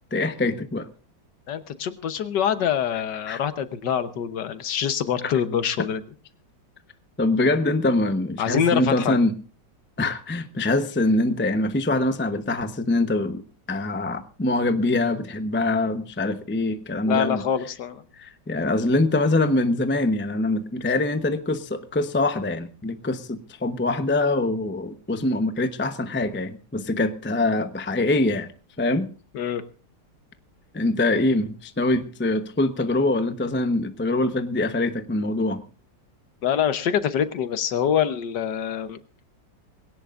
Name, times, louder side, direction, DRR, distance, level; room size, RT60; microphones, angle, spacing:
voice 1, 0.1-0.9 2.9-3.4 5.2-5.3 7.2-9.3 10.0-13.4 13.7-17.5 18.1-28.5 28.8-29.1 30.7-35.6, left 2 dB, 10° left, 9 dB, 0.5 m, -24 dB
voice 2, 1.5-6.0 8.4-9.2 17.1-18.0 29.3-29.6 36.4-39.0, left 8 dB, 70° left, 11 dB, 1.6 m, -25 dB
21.5 x 17.5 x 2.5 m, 0.35 s
omnidirectional pair, 2.0 m